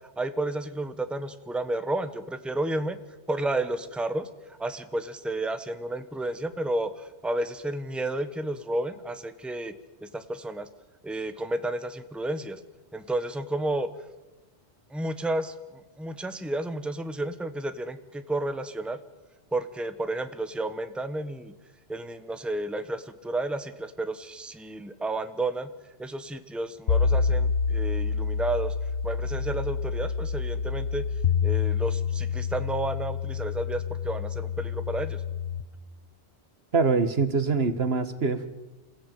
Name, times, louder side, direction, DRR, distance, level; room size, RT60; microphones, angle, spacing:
voice 1, 0.2-3.0 3.3-4.3 4.6-9.7 10.0-10.7 11.0-12.6 12.9-13.9 14.9-15.5 16.0-19.0 19.5-21.5 21.9-25.7 26.0-28.7 29.0-31.0 31.4-35.2, right 2 dB, ahead, 10 dB, 1.2 m, -31 dB
sound 1, 26.9-35.6, left 6 dB, 70° left, 1.3 m, -28 dB
voice 2, 36.7-38.5, right 4 dB, 65° right, 11 dB, 1.7 m, -24 dB
27.5 x 16.0 x 9.2 m, 1.1 s
omnidirectional pair, 1.1 m